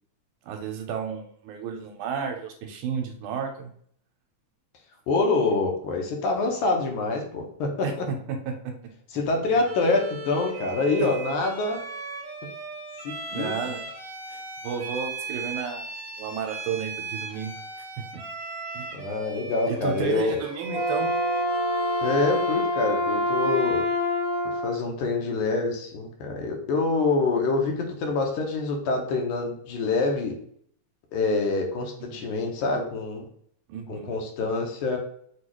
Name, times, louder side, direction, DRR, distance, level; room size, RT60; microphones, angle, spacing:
voice 1, 0.4-3.7 7.8-8.7 9.1-9.3 11.0-11.1 13.3-13.9 14.3-15.9 16.2-17.5 18.7-18.9 19.7-21.1 32.0-32.3 33.7-34.1, right 6 dB, 80° right, 4 dB, 2.1 m, -32 dB
voice 2, 5.1-7.9 9.1-11.8 13.0-13.5 18.9-20.4 22.0-23.9 24.5-30.4 31.1-33.3 33.9-35.0, left 3 dB, 80° left, 2 dB, 2.2 m, -26 dB
Bowed string instrument, 9.6-22.8, right 4 dB, 60° right, 1.9 m, -37 dB
Wind instrument woodwind instrument, 20.6-24.8, left 1 dB, 60° left, 1.4 m, -26 dB
6.5 x 2.4 x 3.0 m, 0.63 s
omnidirectional pair, 3.6 m